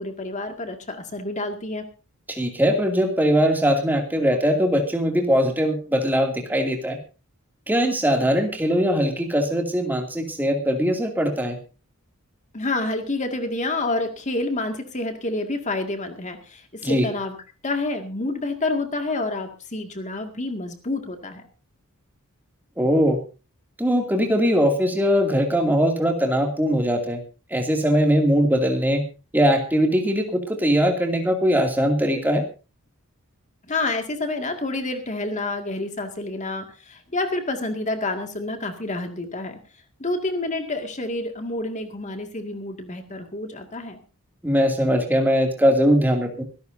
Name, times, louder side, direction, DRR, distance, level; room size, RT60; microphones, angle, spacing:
voice 1, 0.0-1.9 12.5-17.4 17.6-21.5 33.7-39.6 40.0-44.0, left 2 dB, 35° left, 6 dB, 2.1 m, -28 dB
voice 2, 2.3-7.0 7.7-11.6 16.8-17.1 22.8-23.2 23.8-27.2 27.5-29.0 29.3-32.4 44.4-46.4, equal, 10° right, 2 dB, 2.5 m, -21 dB
25.0 x 13.0 x 2.7 m, 0.32 s
head